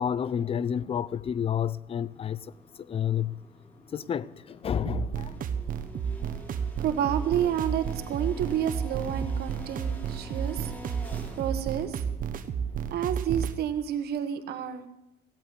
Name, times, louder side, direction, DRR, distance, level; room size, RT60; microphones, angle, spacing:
voice 1, 0.0-2.5 2.9-3.4 3.9-5.3, left 8 dB, 35° left, 0.5 m, -30 dB
sound 1, 2.0-13.8, left 1 dB, 10° left, 3.2 m, -49 dB
sound 2, 4.9-13.6, right 7 dB, 55° right, 1.1 m, -32 dB
voice 2, 6.8-12.0 12.9-14.9, right 9 dB, 70° right, 1.4 m, -30 dB
16.0 x 8.5 x 7.9 m
cardioid pair, 110°, 17 cm